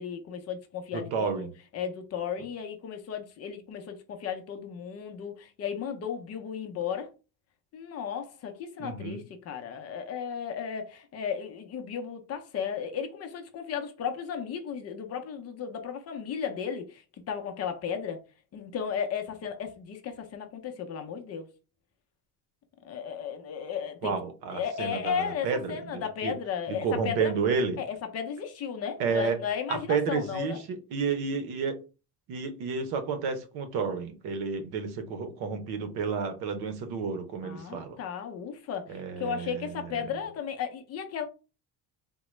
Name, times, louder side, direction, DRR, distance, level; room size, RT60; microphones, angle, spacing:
voice 1, 0.0-1.5 1.7-7.1 7.7-17.0 17.3-18.2 18.5-21.5 22.8-24.1 24.5-27.3 27.8-30.6 37.4-41.2, left 7 dB, 40° left, 0.6 m, -35 dB
voice 2, 0.9-1.5 8.8-9.2 24.0-26.4 26.7-27.8 29.0-29.4 29.7-31.8 32.3-38.0 38.9-39.9, right 5 dB, 85° right, 0.8 m, -31 dB
3.7 x 2.1 x 3.1 m
cardioid pair, 175°, 37 cm